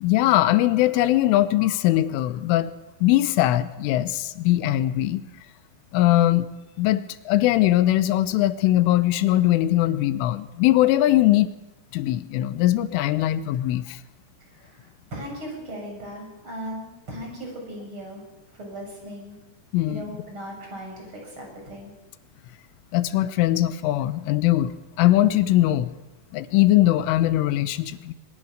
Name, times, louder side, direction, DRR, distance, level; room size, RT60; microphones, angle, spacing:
voice 1, 0.0-2.7 3.0-5.2 5.9-6.5 6.8-11.5 11.9-14.0 19.7-20.1 22.9-25.9 26.3-28.1, left 14 dB, 90° left, 14 dB, 3.5 m, -21 dB
voice 2, 14.5-18.2 18.5-19.4 19.8-21.9, equal, 25° right, 1 dB, 7.3 m, -38 dB
23.0 x 20.5 x 6.5 m, 0.99 s
omnidirectional pair, 5.6 m